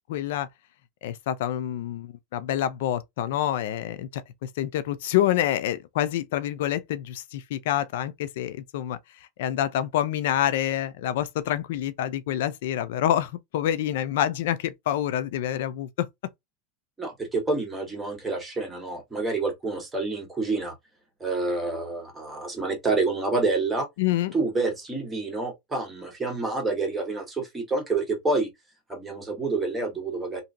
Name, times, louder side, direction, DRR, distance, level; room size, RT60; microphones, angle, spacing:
voice 1, 0.1-0.5 1.0-9.0 9.4-16.1 24.0-24.3, left 12 dB, 75° left, 0.4 m, -27 dB
voice 2, 17.0-20.7 21.2-23.9 24.3-28.5 28.9-30.4, right 3 dB, 10° right, 1.5 m, -28 dB
2.9 x 2.7 x 2.5 m
supercardioid pair, 120°, 0 cm